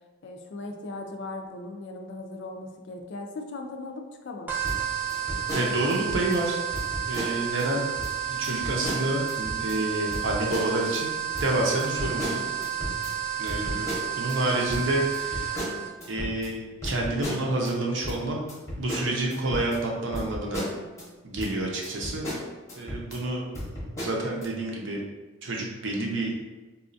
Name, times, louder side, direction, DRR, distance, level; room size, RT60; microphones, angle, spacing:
voice 1, 0.2-4.5, left 2 dB, 55° left, 4 dB, 0.4 m, -38 dB
sound 1, 4.5-15.9, right 10 dB, 10° right, 0.4 m, -31 dB
sound 2, 4.6-6.4 6.7-7.6 8.0-8.1 8.4-9.8 10.1-11.0 11.3-14.4 14.7-17.7 18.0-21.1 21.4-21.5 21.8-23.2 23.5-24.4, equal, 15° left, 0.8 m, -35 dB
voice 2, 5.5-6.6 7.1-7.8 8.3-11.1 11.4-12.4 13.4-15.6 16.1-18.4 18.8-20.6 21.2-22.2 22.8-23.4 24.0-25.0 25.4-26.3, right 2 dB, 60° right, -1 dB, 0.6 m, -28 dB
4.1 x 2.3 x 2.5 m, 1.2 s
head